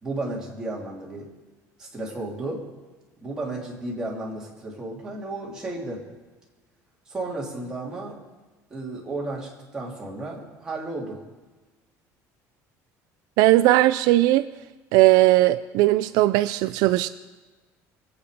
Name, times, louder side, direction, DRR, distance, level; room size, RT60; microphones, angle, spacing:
voice 1, 0.0-1.3 1.8-2.6 3.2-6.0 7.1-8.1 8.7-11.2, right 2 dB, 10° right, -4 dB, 3.0 m, -33 dB
voice 2, 13.4-14.5 14.9-17.1, right 17 dB, 70° right, 12 dB, 0.4 m, -18 dB
23.5 x 8.6 x 5.1 m, 1.2 s
cardioid pair, 175°, 7 cm